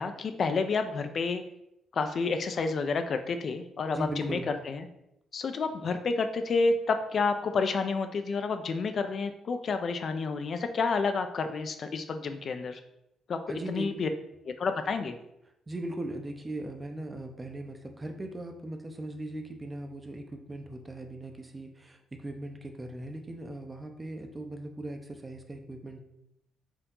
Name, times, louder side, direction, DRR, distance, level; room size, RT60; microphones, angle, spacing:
voice 1, 0.0-1.4 1.9-4.4 4.7-4.9 5.3-12.8 13.3-13.4 13.7-14.1 14.5-15.2, left 4 dB, 50° left, 8 dB, 0.4 m, -29 dB
voice 2, 3.9-4.5 13.5-13.9 15.7-26.0, right 1 dB, 20° right, 5 dB, 0.6 m, -39 dB
4.5 x 2.7 x 3.8 m, 0.82 s
cardioid pair, 90°, 0 cm